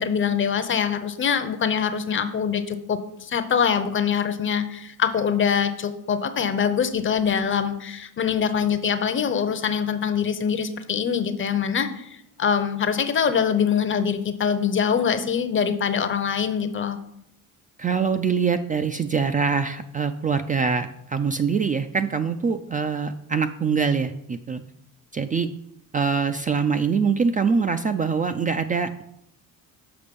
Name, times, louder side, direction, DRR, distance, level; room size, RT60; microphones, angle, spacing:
voice 1, 0.0-17.0, left 7 dB, 35° left, 11 dB, 0.7 m, -24 dB
voice 2, 17.8-24.6 25.1-25.5 25.9-29.0, right 5 dB, 25° right, 8 dB, 0.3 m, -24 dB
6.8 x 5.2 x 5.2 m, 0.76 s
cardioid pair, 110°, 34 cm